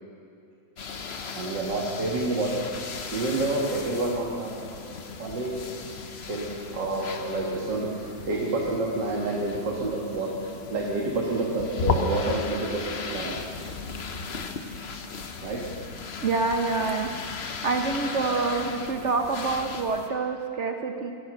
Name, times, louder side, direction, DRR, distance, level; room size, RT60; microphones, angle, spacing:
sound 1, 0.8-20.1, left 4 dB, 45° left, 0.9 m, -36 dB
voice 1, 1.3-2.8 3.1-5.9 6.3-13.4 15.2-15.6, right 2 dB, 70° right, -3 dB, 2.5 m, -29 dB
voice 2, 16.2-17.1 17.6-21.1, right 4 dB, 50° right, 5 dB, 1.0 m, -26 dB
15.5 x 13.5 x 6.4 m, 2.4 s
omnidirectional pair, 2.0 m